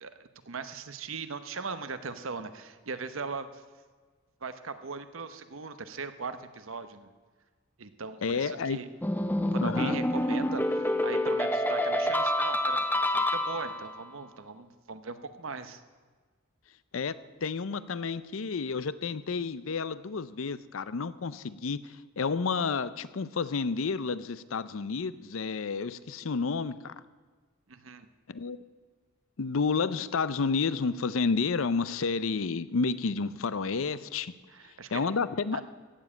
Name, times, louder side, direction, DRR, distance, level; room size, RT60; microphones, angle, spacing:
voice 1, 0.0-3.6 4.4-7.1 7.8-8.9 9.5-15.8 27.7-28.1 34.5-35.2 35.5-35.6, right 4 dB, 70° right, 11 dB, 0.9 m, -39 dB
voice 2, 8.2-8.8 9.6-10.0 16.9-17.2 17.4-26.9 28.3-28.6 29.4-34.3 34.9-35.6, left 4 dB, 70° left, 15 dB, 0.6 m, -30 dB
sound 1, 9.0-13.9, left 1 dB, 10° left, 0.7 m, -27 dB
16.0 x 7.3 x 8.8 m, 1.5 s
head